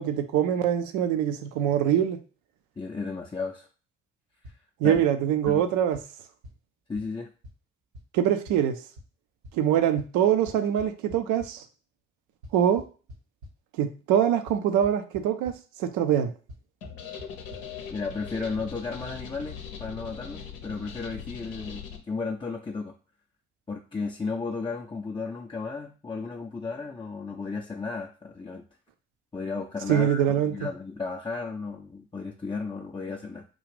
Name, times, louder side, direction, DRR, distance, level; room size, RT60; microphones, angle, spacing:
voice 1, 0.0-2.2 4.8-6.0 8.1-8.8 9.5-11.6 12.5-12.8 13.8-15.5 15.8-16.3 29.9-30.7, right 10 dB, 65° right, 9 dB, 0.6 m, -24 dB
voice 2, 2.8-3.7 4.4-5.0 5.5-5.6 6.9-7.3 17.9-22.9 23.7-28.7 29.3-33.5, left 4 dB, 15° left, -1 dB, 0.5 m, -34 dB
sound 1, 4.4-4.5 4.9-5.0 5.4-5.5 5.9-6.0 6.4-6.5 6.9-7.0 7.4-7.5 7.9-8.0 8.5-8.6 9.0-9.1 9.4-9.5 10.0-10.1 10.5-11.5 12.4-13.5 14.5-14.6 14.8-15.2 15.4-15.5 16.5-16.6 16.8-16.9 17.2-17.3 17.5-17.6, left 1 dB, 80° right, 1.1 m, -43 dB
sound 2, 16.8-22.0, left 7 dB, 75° left, 0.7 m, -40 dB
3.7 x 2.4 x 3.3 m, 0.36 s
figure-of-eight pair, 45°, 33 cm